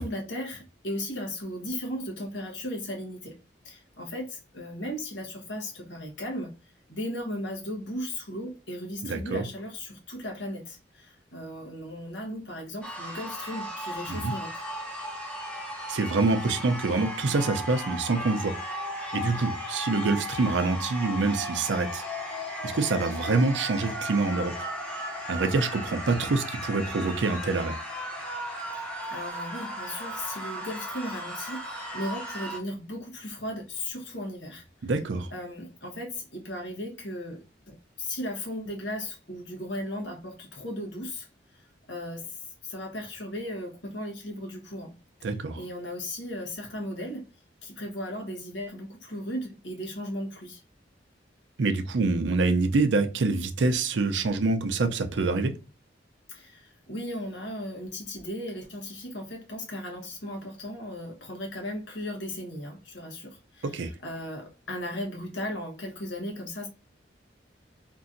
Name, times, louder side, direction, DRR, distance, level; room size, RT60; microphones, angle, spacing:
voice 1, 0.0-3.4 3.6-14.6 28.8-34.9 35.3-41.3 41.5-45.3 45.5-47.3 47.6-50.6 56.3-66.7, left 1 dB, 80° left, 1.1 m, -36 dB
voice 2, 9.0-9.4 14.1-14.3 15.9-18.5 19.1-22.0 22.6-24.5 25.3-27.8 34.8-35.3 45.2-45.6 51.6-55.5 63.6-63.9, right 3 dB, 80° right, 0.5 m, -26 dB
sound 1, 12.8-32.6, equal, 5° left, 0.6 m, -36 dB
2.9 x 2.6 x 2.5 m
head